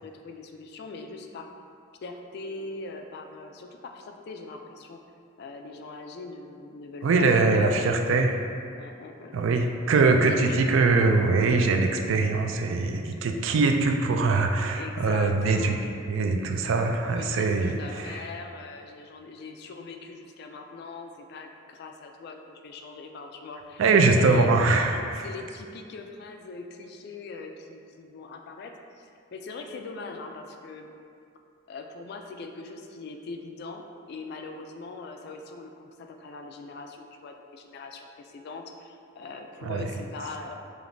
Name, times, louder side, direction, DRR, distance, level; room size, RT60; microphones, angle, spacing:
voice 1, 0.0-1.5 2.0-5.0 5.4-7.9 8.8-9.5 10.3-10.6 13.6-13.7 14.8-15.8 17.0-24.5 25.2-30.9 31.7-33.8 34.1-40.6, left 3 dB, 55° left, 4 dB, 0.3 m, -41 dB
voice 2, 7.0-8.4 9.3-15.8 16.0-18.1 23.8-25.2 39.6-39.8, right 3 dB, 75° right, 4 dB, 0.3 m, -22 dB
5.0 x 2.9 x 2.6 m, 2.4 s
head